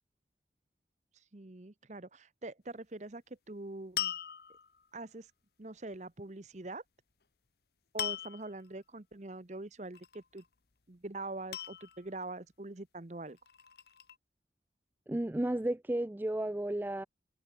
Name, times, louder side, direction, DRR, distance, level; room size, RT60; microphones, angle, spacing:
voice 1, 1.3-4.1 4.9-5.3 5.6-6.8 7.9-10.4 10.9-13.4, right 2 dB, 40° right, 0.9 m, -44 dB
sound 1, 4.0-4.9 8.0-8.6 9.9-10.5 11.5-12.3 13.3-14.1, left 10 dB, 60° left, 1.1 m, -39 dB
voice 2, 15.1-17.1, right 1 dB, 10° right, 0.3 m, -33 dB
head